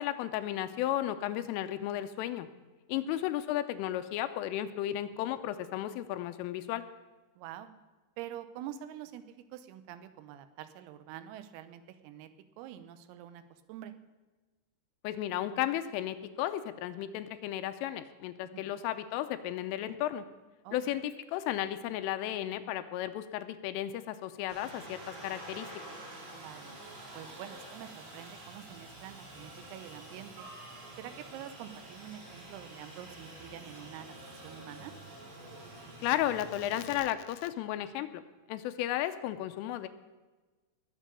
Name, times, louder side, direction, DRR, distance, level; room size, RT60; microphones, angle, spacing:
voice 1, 0.0-2.5 2.9-6.8 15.0-20.3 20.7-25.7 36.0-38.2 38.5-39.9, left 12 dB, 85° left, 10 dB, 3.1 m, -34 dB
voice 2, 7.4-7.7 8.2-12.3 12.6-13.9 18.4-18.8 20.6-21.0 26.3-26.8 27.1-30.5 31.0-34.9, right 11 dB, 85° right, 10 dB, 3.6 m, -46 dB
Aircraft, 24.5-37.0, right 1 dB, 70° right, 8.4 m, -48 dB
20.5 x 7.5 x 6.9 m, 1.3 s
omnidirectional pair, 5.9 m